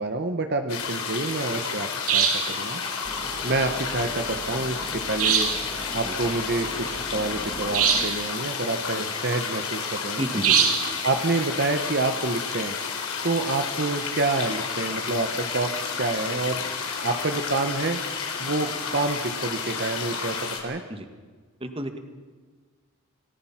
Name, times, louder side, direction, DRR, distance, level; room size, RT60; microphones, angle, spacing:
voice 1, 0.0-2.8 3.4-5.5 5.9-10.2 11.0-12.8 13.2-15.7 16.0-16.6 17.0-18.0 18.4-20.8, right 3 dB, 50° right, 6 dB, 1.1 m, -28 dB
sound 1, 0.7-20.6, left 5 dB, 75° left, 4.4 m, -31 dB
sound 2, 2.1-2.6 5.2-5.7 7.7-8.2 10.4-10.9, right 7 dB, 80° right, 2.7 m, -22 dB
sound 3, 3.0-8.1, equal, 5° right, 1.9 m, -40 dB
voice 2, 10.2-10.7 20.9-21.1 21.6-22.0, right 1 dB, 25° right, 7 dB, 1.8 m, -31 dB
28.0 x 18.5 x 5.9 m, 1.5 s
head